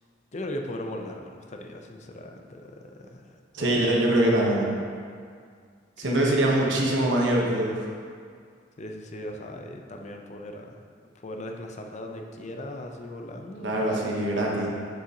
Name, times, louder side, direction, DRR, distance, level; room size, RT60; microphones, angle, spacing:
voice 1, 0.3-4.1 6.0-6.6 8.8-10.8 11.2-13.8, left 1 dB, 40° left, 3 dB, 0.6 m, -38 dB
voice 2, 3.5-4.7 6.0-7.8 13.6-14.7, right 1 dB, 70° right, -2 dB, 1.0 m, -23 dB
8.0 x 6.4 x 2.8 m, 2.1 s
head